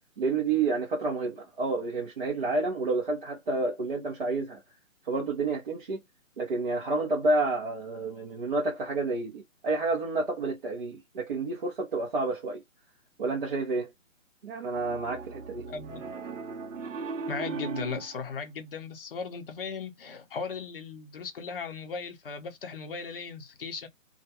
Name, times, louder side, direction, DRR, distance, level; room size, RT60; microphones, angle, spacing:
voice 1, 0.2-4.6 5.0-6.0 6.4-12.6 13.2-13.9 14.4-15.7, right 3 dB, 40° right, 0.7 m, -29 dB
Piano, 14.7-18.2, right 5 dB, 65° right, 0.8 m, -37 dB
voice 2, 15.7-16.1 17.3-23.9, left 5 dB, 40° left, 0.7 m, -37 dB
2.3 x 2.2 x 2.7 m
figure-of-eight pair, 150°, 41 cm